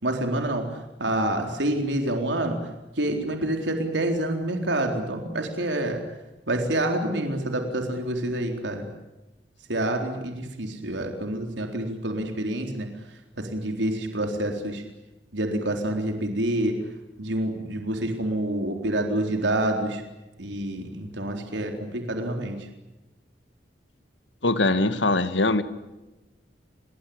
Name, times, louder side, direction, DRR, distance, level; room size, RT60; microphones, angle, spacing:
voice 1, 0.0-2.7 2.9-6.0 6.5-8.9 9.7-14.8 15.3-16.8 17.2-20.0 20.4-22.7, right 1 dB, 85° right, 4 dB, 4.0 m, -27 dB
voice 2, 24.4-25.6, left 2 dB, 85° left, 11 dB, 2.1 m, -22 dB
29.5 x 21.0 x 8.7 m, 1.0 s
head